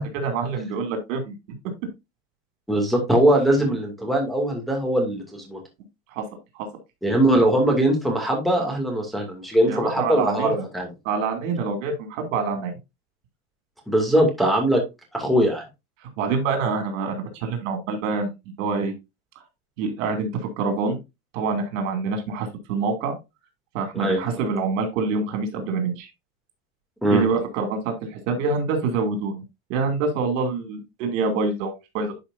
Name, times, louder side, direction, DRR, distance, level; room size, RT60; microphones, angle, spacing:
voice 1, 0.0-1.3 6.1-6.2 6.5-6.7 9.6-10.6 11.0-12.7 16.0-18.3 18.6-18.9 19.8-21.0 21.3-23.1 23.7-26.1 27.1-29.4 29.7-32.1, right 4 dB, 85° right, 6 dB, 2.8 m, -26 dB
voice 2, 2.7-5.6 7.0-10.9 13.9-14.8 15.1-15.6 23.9-24.2 27.0-27.2, right 1 dB, ahead, 0 dB, 2.4 m, -21 dB
11.5 x 5.0 x 2.6 m, 0.23 s
cardioid pair, 145°, 37 cm